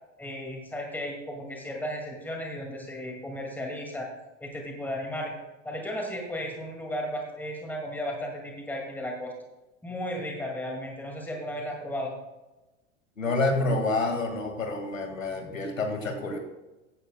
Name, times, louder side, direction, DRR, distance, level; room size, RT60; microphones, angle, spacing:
voice 1, 0.2-4.1 4.4-5.3 5.6-9.3 9.8-12.1, equal, 5° left, 0 dB, 2.1 m, -34 dB
voice 2, 13.2-16.4, left 2 dB, 85° left, 4 dB, 2.0 m, -28 dB
15.5 x 11.0 x 2.2 m, 1.1 s
figure-of-eight pair, 85°, 39 cm